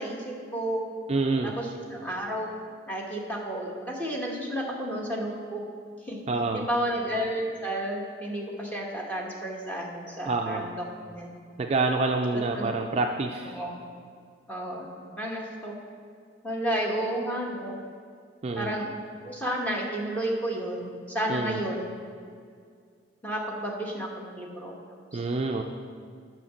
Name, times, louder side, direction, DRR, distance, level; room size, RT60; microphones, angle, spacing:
voice 1, 0.0-0.9 1.4-2.5 2.9-5.6 6.0-6.2 6.5-11.3 12.5-12.7 13.4-13.8 14.5-14.9 15.2-15.7 16.4-17.8 18.5-18.9 19.2-21.9 23.2-24.8 25.1-25.2, right 1 dB, 10° left, -2 dB, 1.1 m, -32 dB
voice 2, 1.1-1.5 6.3-6.7 10.3-10.7 11.6-13.6 18.4-18.8 21.3-21.6 25.1-25.6, right 3 dB, 30° right, 3 dB, 0.3 m, -27 dB
7.5 x 5.8 x 6.8 m, 2.1 s
head